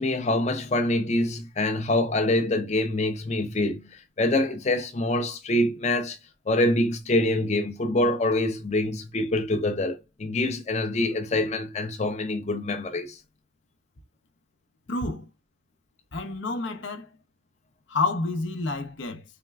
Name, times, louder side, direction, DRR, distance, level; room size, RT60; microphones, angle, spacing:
voice 1, 0.0-6.2 6.5-13.2, left 1 dB, 35° left, 0.5 m, -25 dB
voice 2, 14.9-15.3 16.1-17.1 17.9-19.2, left 3 dB, 80° left, 0.7 m, -29 dB
4.3 x 3.3 x 2.2 m
head